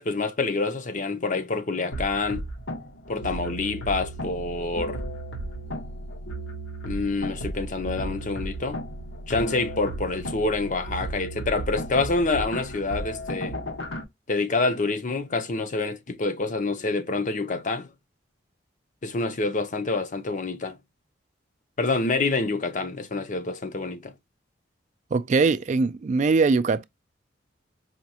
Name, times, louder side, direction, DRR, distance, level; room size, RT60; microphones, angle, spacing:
voice 1, 0.0-2.4 3.1-5.0 6.8-8.8 9.3-13.6 14.3-17.9 19.0-20.8 21.8-24.1, left 3 dB, 45° left, 0.6 m, -27 dB
sound 1, 1.9-14.0, right 1 dB, 90° left, 1.3 m, -34 dB
voice 2, 25.1-26.8, right 4 dB, 40° right, 0.3 m, -21 dB
5.0 x 2.3 x 2.8 m
head